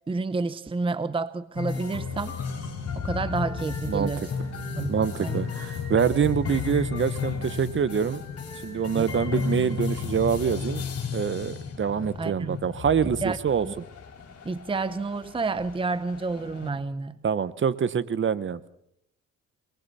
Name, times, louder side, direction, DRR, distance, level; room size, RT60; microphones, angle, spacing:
voice 1, 0.1-2.4 2.9-4.3 4.8-5.4 8.9-9.1 12.2-12.6 13.2-13.4 13.6-13.7 14.4-17.2, right 3 dB, 15° right, 0.8 m, -29 dB
sound 1, 1.6-16.7, left 5 dB, 55° left, 5.3 m, -33 dB
voice 2, 4.9-8.2 8.6-10.9 11.1-13.8 17.2-18.7, right 7 dB, 40° right, 1.0 m, -25 dB
28.0 x 22.0 x 4.2 m
cardioid pair, 90°, 30 cm